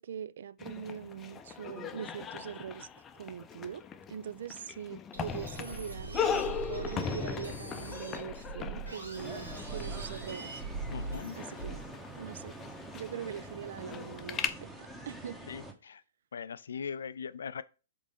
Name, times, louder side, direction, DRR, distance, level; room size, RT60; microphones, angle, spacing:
voice 1, 0.0-2.9 3.1-3.8 4.1-10.6 11.3-11.8 12.2-12.5 12.9-15.4, right 8 dB, 65° right, 0.3 m, -42 dB
sound 1, 0.6-14.5, left 7 dB, 20° left, 0.6 m, -39 dB
sound 2, 5.1-11.9, right 4 dB, 90° right, 2.5 m, -42 dB
sound 3, 9.1-15.7, right 1 dB, 5° right, 1.2 m, -46 dB
voice 2, 10.9-11.4 15.5-16.0 16.3-17.6, left 6 dB, 75° left, 0.4 m, -40 dB
5.1 x 3.9 x 5.0 m
hypercardioid pair, 115°, 0 cm